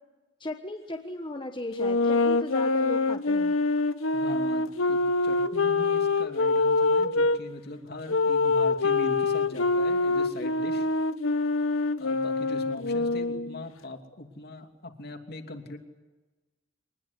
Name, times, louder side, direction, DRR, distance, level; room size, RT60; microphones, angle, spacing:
voice 1, 0.4-3.5, left 1 dB, 25° left, 3 dB, 1.3 m, -36 dB
sound 1, 1.8-7.4 8.1-13.6, left 3 dB, 90° left, 1.0 m, -25 dB
voice 2, 4.1-10.9 12.0-15.8, left 1 dB, 50° left, 4 dB, 2.9 m, -40 dB
24.5 x 20.0 x 10.0 m, 1.2 s
head